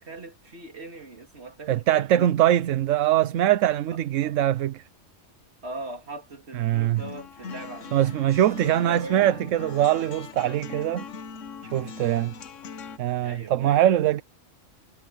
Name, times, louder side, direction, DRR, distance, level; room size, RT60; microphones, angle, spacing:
voice 1, 0.0-2.2 4.2-4.3 5.6-8.1 8.6-9.3 13.2-13.8, right 2 dB, 55° right, 3.0 m, -39 dB
voice 2, 1.7-4.8 6.5-7.0 7.9-11.0 11.7-12.3 13.0-14.2, right 12 dB, 80° right, 1.0 m, -22 dB
sound 1, 7.0-13.0, left 6 dB, 75° left, 1.4 m, -41 dB
omnidirectional pair, 1.3 m